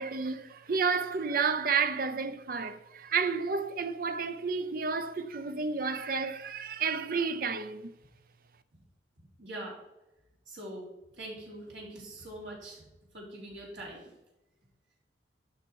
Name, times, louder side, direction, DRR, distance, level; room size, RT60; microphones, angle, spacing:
voice 1, 0.0-7.9, right 5 dB, 50° right, 0.6 m, -31 dB
voice 2, 9.4-9.8 10.5-10.9 11.2-12.8 13.1-14.1, right 1 dB, 85° right, 3.7 m, -43 dB
12.0 x 5.8 x 4.7 m
head